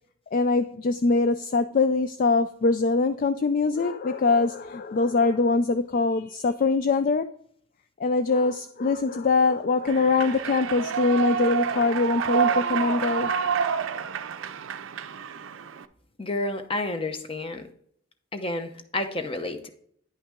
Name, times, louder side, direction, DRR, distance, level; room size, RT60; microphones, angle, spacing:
voice 1, 0.3-7.3 8.0-13.3, left 3 dB, 40° left, 0.3 m, -23 dB
Human voice / Clapping / Cheering, 9.9-15.8, right 7 dB, 75° right, 0.5 m, -28 dB
voice 2, 16.2-17.7 18.3-19.7, left 2 dB, 25° left, 0.8 m, -30 dB
10.0 x 5.7 x 3.6 m
head